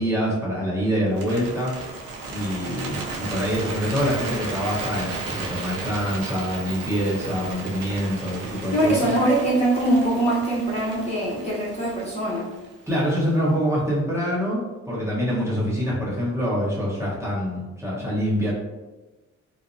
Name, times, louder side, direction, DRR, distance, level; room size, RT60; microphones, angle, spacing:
voice 1, 0.0-1.7 2.3-9.1 12.9-18.5, equal, 10° right, -7 dB, 0.9 m, -25 dB
Bird, 1.1-13.3, right 3 dB, 85° right, 0.5 m, -35 dB
voice 2, 8.7-12.5, right 1 dB, 20° left, -7 dB, 0.7 m, -22 dB
2.5 x 2.0 x 2.5 m, 1.1 s
cardioid pair, 90°, 30 cm